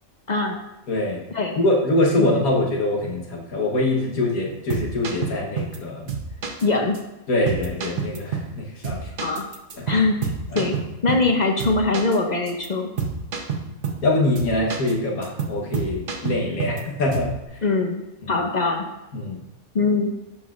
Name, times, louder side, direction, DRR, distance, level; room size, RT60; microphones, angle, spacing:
voice 1, 0.3-0.6 1.3-1.6 2.2-2.4 6.6-7.0 9.2-9.4 9.9-10.2 10.5-10.8 11.0-12.9 17.6-18.0 18.3-18.8 19.7-20.1, left 3 dB, 50° left, 3 dB, 0.5 m, -22 dB
voice 2, 0.9-1.2 1.6-6.0 7.3-9.0 10.5-10.6 14.0-17.3 18.3-18.4 19.1-19.4, left 1 dB, 85° left, -1 dB, 1.6 m, -23 dB
sound 1, 4.5-5.8 6.1-6.7 6.9-7.0 7.5-8.6 8.8-11.3 11.6-12.2 12.5-12.7 13.0-14.1 14.4-14.9 15.2-16.8 17.1-17.4, right 5 dB, 45° right, 0.9 m, -29 dB
11.0 x 6.0 x 2.5 m, 0.96 s
omnidirectional pair, 1.5 m